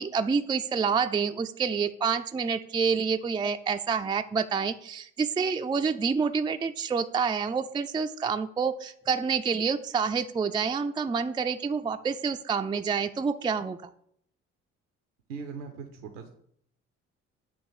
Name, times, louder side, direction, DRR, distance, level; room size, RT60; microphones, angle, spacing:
voice 1, 0.0-13.9, right 5 dB, 15° right, 7 dB, 0.4 m, -28 dB
voice 2, 15.3-16.3, right 5 dB, 80° right, 4 dB, 0.7 m, -39 dB
8.5 x 3.1 x 6.2 m, 0.67 s
figure-of-eight pair, 45°, 36 cm